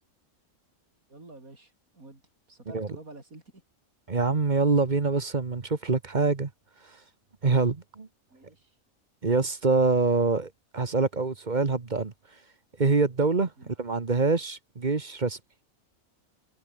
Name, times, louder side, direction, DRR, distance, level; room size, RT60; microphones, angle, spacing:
voice 1, 1.1-2.2 2.5-3.6 8.3-8.8 13.6-13.7, right 2 dB, 85° right, 6.1 m, -49 dB
voice 2, 4.1-6.5 7.4-8.1 9.2-12.1 12.8-15.4, right 4 dB, 35° right, 1.4 m, -25 dB
omnidirectional pair, 1.4 m